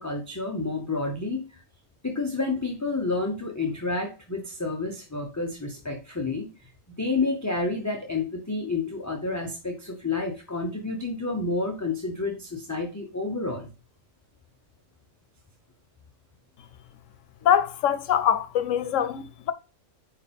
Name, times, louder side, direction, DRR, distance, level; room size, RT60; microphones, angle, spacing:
voice 1, 0.0-1.6 2.0-6.5 7.0-13.7, left 3 dB, 15° left, 0.7 m, -29 dB
voice 2, 17.4-19.5, left 9 dB, 90° left, 1.0 m, -23 dB
4.8 x 4.4 x 5.2 m
omnidirectional pair, 1.3 m